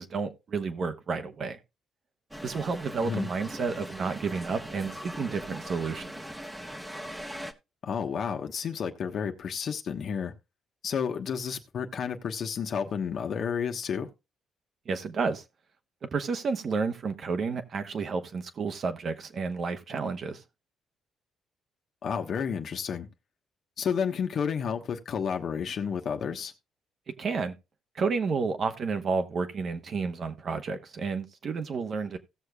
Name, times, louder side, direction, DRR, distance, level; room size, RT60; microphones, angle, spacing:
voice 1, 0.0-1.6 2.4-6.1 14.8-15.4 16.0-20.4 27.2-27.5 27.9-32.2, right 4 dB, 55° right, 1.2 m, -31 dB
sound 1, 2.3-7.5, equal, 5° right, 1.1 m, -40 dB
voice 2, 7.8-10.3 10.8-14.1 22.0-23.1 23.8-26.5, left 7 dB, 60° left, 1.2 m, -31 dB
17.0 x 6.6 x 2.3 m
cardioid pair, 90°, 0 cm